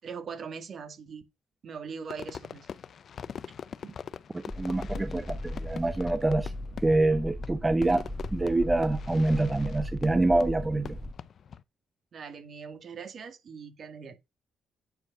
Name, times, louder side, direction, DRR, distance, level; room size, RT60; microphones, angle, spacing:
voice 1, 0.0-1.2 1.6-2.7 3.8-3.9 12.1-14.1, right 6 dB, 55° right, 2.2 m, -41 dB
Fireworks, 2.1-11.6, left 7 dB, 55° left, 0.6 m, -43 dB
voice 2, 4.3-6.5 6.8-8.0 8.3-11.0, right 2 dB, 15° right, 0.6 m, -26 dB
sound 1, 4.5-11.1, left 1 dB, 5° left, 1.4 m, -37 dB
9.1 x 4.9 x 4.7 m
cardioid pair, 90°, 0 cm